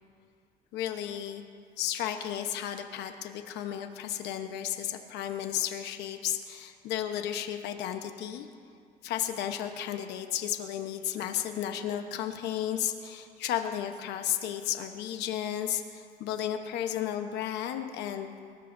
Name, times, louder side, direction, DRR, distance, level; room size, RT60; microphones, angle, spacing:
voice 1, 0.7-1.4 1.8-8.5 9.0-18.3, left 10 dB, 85° left, 6 dB, 1.0 m, -33 dB
23.5 x 19.5 x 2.7 m, 2.2 s
cardioid pair, 110°, 17 cm